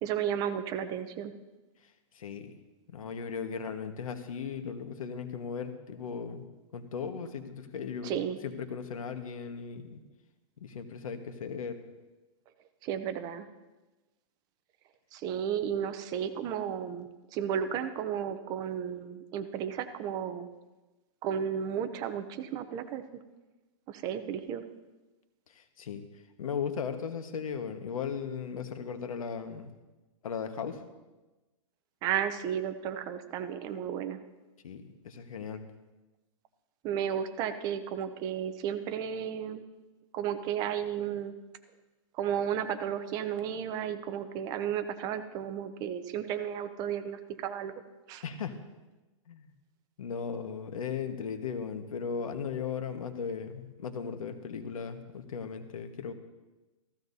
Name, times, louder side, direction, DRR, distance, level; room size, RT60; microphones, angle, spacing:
voice 1, 0.0-1.3 8.0-8.4 12.8-13.5 15.1-20.5 21.2-23.2 23.9-24.6 32.0-34.2 36.8-39.6 40.1-41.3 42.1-47.7 48.1-48.2, right 9 dB, 20° right, 9 dB, 0.6 m, -33 dB
voice 2, 2.1-2.6 2.9-6.4 6.7-10.0 10.6-11.8 25.5-26.1 26.4-29.7 30.2-30.8 34.6-35.6 48.2-48.6 49.3-49.5 50.0-56.1, left 6 dB, 85° left, 7 dB, 1.4 m, -37 dB
15.5 x 14.5 x 2.7 m, 1.1 s
hypercardioid pair, 160°, 17 cm